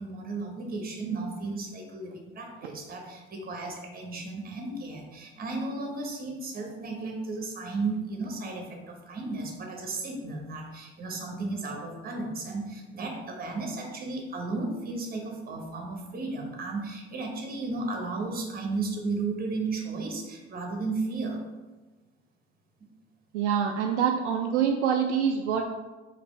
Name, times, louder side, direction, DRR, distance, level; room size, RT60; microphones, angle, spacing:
voice 1, 0.0-21.4, right 3 dB, 25° right, 1 dB, 1.1 m, -34 dB
voice 2, 23.3-25.6, right 7 dB, 65° right, 3 dB, 0.5 m, -25 dB
4.9 x 3.0 x 3.2 m, 1.2 s
figure-of-eight pair, 70°, 38 cm